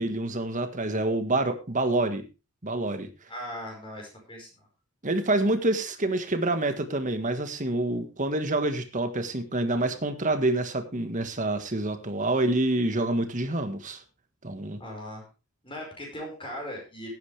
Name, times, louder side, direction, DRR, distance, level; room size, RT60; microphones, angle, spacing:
voice 1, 0.0-2.2 2.6-3.1 5.0-14.0 14.4-14.8, right 2 dB, 35° right, 8 dB, 1.6 m, -27 dB
voice 2, 3.3-4.7 14.8-15.3 15.6-17.1, equal, 25° left, 0 dB, 5.2 m, -39 dB
17.5 x 9.5 x 3.4 m, 0.29 s
head